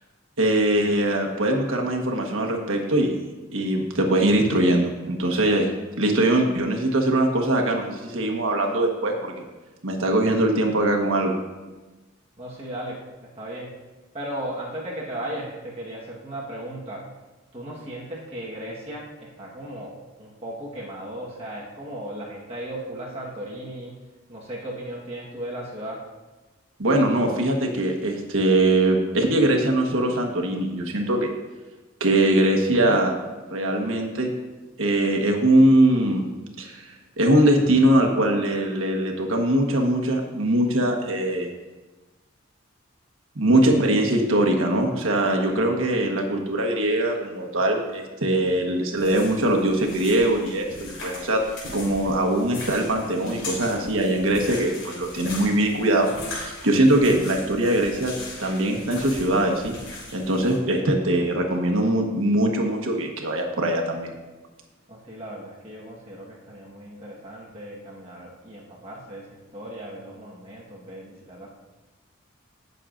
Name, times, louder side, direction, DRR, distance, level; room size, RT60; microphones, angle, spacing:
voice 1, 0.4-3.2 3.5-5.7 6.0-9.4 9.8-11.3 26.8-31.3 32.0-33.1 33.5-34.3 34.8-36.2 36.6-41.5 43.3-51.4 51.7-58.1 58.4-59.8 60.1-64.1, right 1 dB, 80° right, 2 dB, 1.3 m, -22 dB
voice 2, 12.4-13.0 13.3-13.7 14.1-17.0 17.5-23.9 24.3-26.0 64.9-71.5, right 1 dB, 30° right, -4 dB, 1.4 m, -36 dB
sound 1, 49.0-60.6, left 2 dB, 75° left, 3.4 m, -39 dB
18.0 x 6.6 x 2.6 m, 1.2 s
head